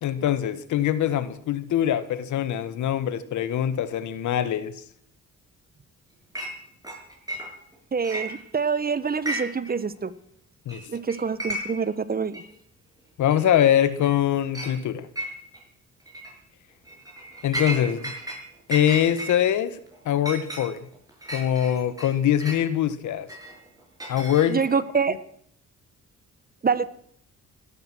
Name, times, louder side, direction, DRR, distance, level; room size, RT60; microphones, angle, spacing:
voice 1, 0.0-4.7 10.6-10.8 13.2-15.1 17.4-18.1 18.7-19.8 20.0-20.8 21.3-23.3 24.1-24.6, left 10 dB, 75° left, 13 dB, 1.5 m, -23 dB
Chink clink, 6.3-6.6 6.8-7.7 8.0-8.8 9.1-9.7 10.0-10.1 10.7-10.8 11.1-11.9 12.3-12.4 13.3-13.4 13.8-14.2 14.5-14.7 15.2-15.6 16.1-16.3 16.8-18.4 18.7-22.6 23.3-24.8, right 1 dB, 10° right, 7.0 m, -34 dB
voice 2, 7.9-10.1 10.9-12.4 24.5-25.1 26.6-26.9, right 5 dB, 30° right, 15 dB, 1.1 m, -26 dB
17.0 x 13.0 x 6.2 m, 0.65 s
cardioid pair, 90°, 30 cm